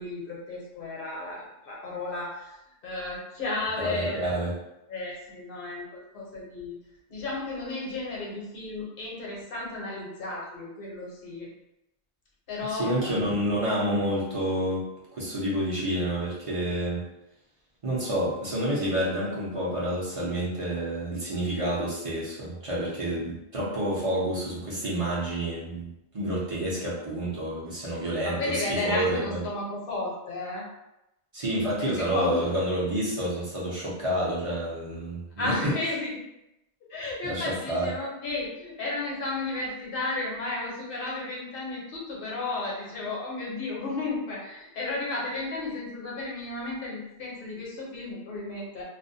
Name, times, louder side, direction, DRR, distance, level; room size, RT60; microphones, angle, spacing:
voice 1, 0.0-2.6 2.8-4.4 4.9-6.8 7.1-11.5 12.5-13.2 27.9-30.6 31.8-32.5 35.4-36.2 36.9-48.8, left 2 dB, 55° left, -3 dB, 0.9 m, -33 dB
voice 2, 3.8-4.5 12.7-17.0 17.8-25.9 26.1-29.4 31.3-35.6 37.2-37.9, right 1 dB, 35° right, -7 dB, 0.6 m, -29 dB
2.4 x 2.1 x 2.6 m, 0.87 s
omnidirectional pair, 1.1 m